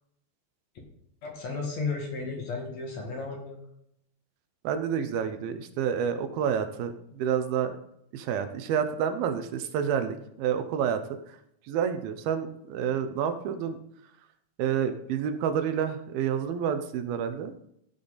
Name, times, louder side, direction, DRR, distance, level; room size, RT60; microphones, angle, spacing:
voice 1, 1.2-3.6, left 4 dB, 55° left, 0 dB, 2.6 m, -34 dB
voice 2, 4.6-7.8 8.1-11.0 11.3-11.4 11.7-13.8 14.6-17.5, right 8 dB, 80° right, 9 dB, 2.6 m, -29 dB
16.0 x 5.7 x 3.9 m, 0.74 s
omnidirectional pair, 4.4 m